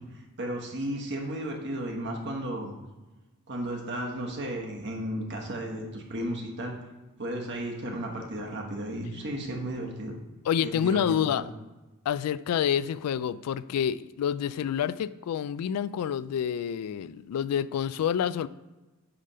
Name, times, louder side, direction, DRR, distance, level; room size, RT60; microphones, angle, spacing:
voice 1, 0.4-2.8 3.5-6.7 7.2-10.1 10.6-11.4, right 1 dB, 50° right, 0 dB, 1.3 m, -34 dB
voice 2, 10.5-11.4 12.1-18.5, left 8 dB, 85° left, 17 dB, 0.3 m, -28 dB
8.7 x 3.4 x 5.5 m, 1.1 s
head